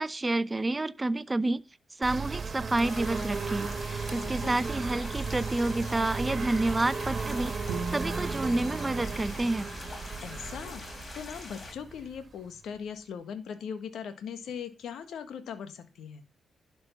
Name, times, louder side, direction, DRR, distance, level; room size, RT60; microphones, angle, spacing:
voice 1, 0.0-1.6 2.0-7.5 7.9-9.7, right 2 dB, 25° right, 0.8 m, -29 dB
sound 1, 2.0-12.6, right 5 dB, 45° right, 1.8 m, -35 dB
sound 2, 2.8-11.7, left 3 dB, 45° left, 4.3 m, -44 dB
voice 2, 4.2-4.5 10.2-10.8 11.1-16.2, left 7 dB, 70° left, 1.6 m, -40 dB
Bowed string instrument, 7.7-10.8, right 4 dB, 85° right, 1.2 m, -41 dB
11.5 x 5.4 x 5.8 m
hypercardioid pair, 40°, 0 cm